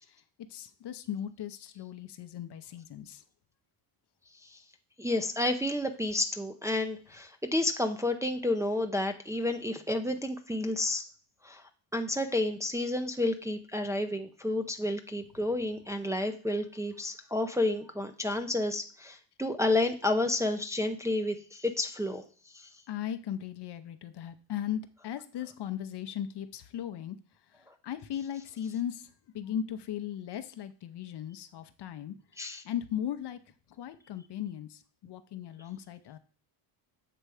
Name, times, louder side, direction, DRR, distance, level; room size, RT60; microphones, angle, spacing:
voice 1, 0.5-3.2 22.9-27.2 27.8-29.1 29.3-32.1 32.6-33.4 33.8-36.2, left 10 dB, 55° left, 10 dB, 0.7 m, -37 dB
voice 2, 5.0-11.0 11.4-11.6 11.9-22.2 32.4-32.6, left 2 dB, 5° right, 4 dB, 0.5 m, -30 dB
7.8 x 3.3 x 4.8 m, 0.39 s
cardioid pair, 100°, 49 cm